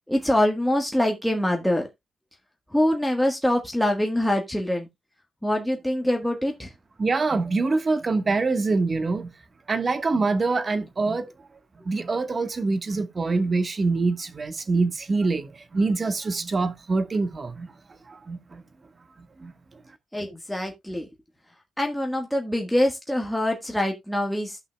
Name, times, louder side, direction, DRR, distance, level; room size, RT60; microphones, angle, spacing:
voice 1, 0.1-1.9 2.7-4.9 5.4-6.7 20.1-21.1 21.8-24.6, left 1 dB, 5° left, 1.4 m, -24 dB
voice 2, 7.0-9.3 9.7-11.3 11.9-17.7 18.1-18.6 19.4-19.5, right 3 dB, 40° right, 1.2 m, -25 dB
16.0 x 5.6 x 2.2 m
cardioid pair, 80°, 0 cm